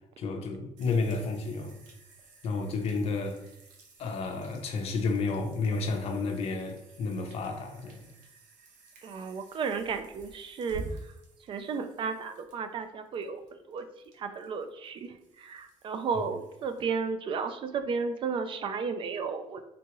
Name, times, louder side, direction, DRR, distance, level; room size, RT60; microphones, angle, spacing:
voice 1, 0.2-1.8 2.4-3.4 4.0-8.1, left 4 dB, 50° left, 0.6 m, -31 dB
sound 1, 0.8-16.8, right 3 dB, 85° right, 0.7 m, -51 dB
voice 2, 9.0-10.8 11.5-13.4 13.7-13.9 14.2-19.6, right 5 dB, 40° right, 0.3 m, -33 dB
3.7 x 2.3 x 3.0 m
cardioid pair, 140°, 13 cm